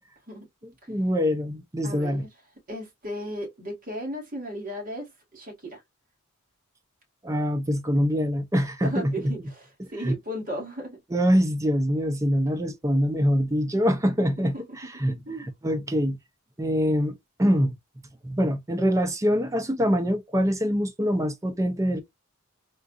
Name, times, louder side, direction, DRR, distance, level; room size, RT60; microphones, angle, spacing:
voice 1, 0.9-2.2 7.2-9.3 9.8-10.1 11.1-16.2 16.6-17.7 18.2-22.0, equal, 15° right, 0.5 m, -24 dB
voice 2, 1.8-2.3 2.7-5.8 8.8-11.0 14.5-14.6 15.3-15.5, equal, 40° right, 1.9 m, -35 dB
3.8 x 2.5 x 2.4 m
head